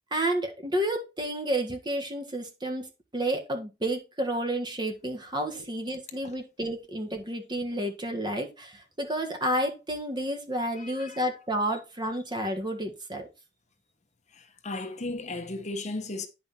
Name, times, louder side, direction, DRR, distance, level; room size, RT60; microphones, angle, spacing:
voice 1, 0.1-2.9 3.1-13.3, right 1 dB, 25° right, 1.7 m, -30 dB
voice 2, 10.8-11.2 14.3-16.3, left 2 dB, 45° left, 1.1 m, -36 dB
9.5 x 5.6 x 4.3 m
head